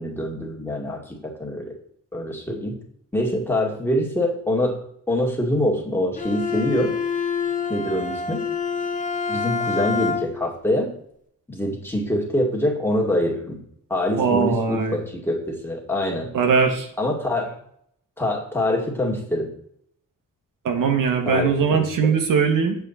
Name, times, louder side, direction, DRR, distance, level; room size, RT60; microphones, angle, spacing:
voice 1, 0.0-1.7 2.1-2.8 3.1-4.8 5.1-6.9 7.7-8.4 9.3-10.9 11.5-13.6 13.9-16.3 17.0-17.6 18.2-19.5 21.3-22.1, left 1 dB, 5° left, -2 dB, 2.2 m, -25 dB
Bowed string instrument, 6.2-10.5, left 6 dB, 25° left, 0.9 m, -27 dB
voice 2, 14.2-15.0 16.3-16.9 20.6-22.8, right 6 dB, 85° right, 4 dB, 1.5 m, -20 dB
8.1 x 7.5 x 4.2 m, 0.68 s
wide cardioid pair, 135°, 32 cm